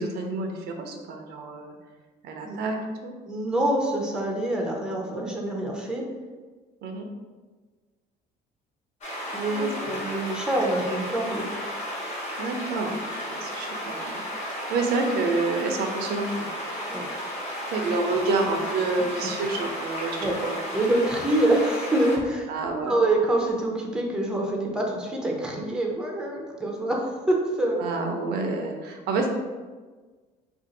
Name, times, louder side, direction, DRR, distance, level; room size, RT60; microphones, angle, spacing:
voice 1, 0.0-1.7 2.2-3.1 6.8-7.0 9.5-10.0 12.4-13.0 13.3-16.5 17.7-20.6 22.5-23.0 27.8-29.3, right 3 dB, 75° right, 3 dB, 0.5 m, -28 dB
voice 2, 3.3-6.1 9.3-11.5 16.9-17.1 19.2-19.3 20.2-20.4 20.7-22.5 22.8-27.8, right 1 dB, 5° right, -1 dB, 0.6 m, -26 dB
sound 1, 9.0-22.2, equal, 45° left, 1.1 m, -34 dB
2.6 x 2.4 x 3.9 m, 1.4 s
cardioid pair, 110°, 17 cm